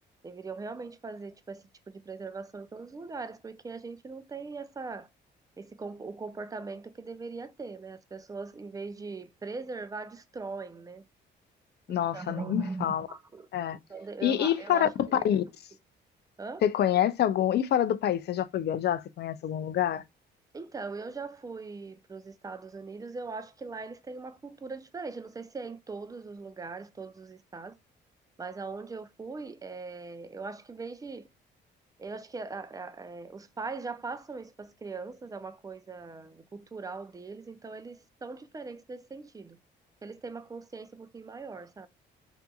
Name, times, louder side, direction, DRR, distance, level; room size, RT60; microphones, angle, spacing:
voice 1, 0.2-5.1 5.6-11.0 11.9-13.5 13.9-15.4 16.4-16.7 20.5-27.8 28.4-31.3 32.0-39.6 40.0-41.9, right 4 dB, 20° right, 0.4 m, -40 dB
voice 2, 11.9-13.1 13.5-13.8 14.2-15.4 16.6-20.0, left 10 dB, 55° left, 0.4 m, -27 dB
2.6 x 2.5 x 2.3 m
cardioid pair, 90°, 20 cm